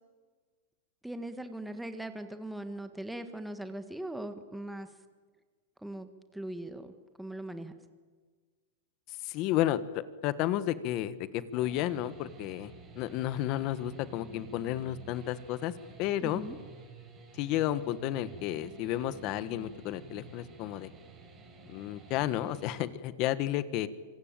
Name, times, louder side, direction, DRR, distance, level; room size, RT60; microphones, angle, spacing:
voice 1, 1.0-4.9 5.8-6.9 7.2-7.7 16.2-16.6, right 1 dB, ahead, 8 dB, 1.6 m, -40 dB
voice 2, 9.1-15.7 16.0-16.4 17.3-20.9 21.6-23.9, left 13 dB, 40° left, 15 dB, 1.4 m, -32 dB
sound 1, 11.6-22.9, right 5 dB, 20° right, 6.1 m, -51 dB
26.0 x 24.0 x 9.0 m, 1.5 s
supercardioid pair, 150°, 0 cm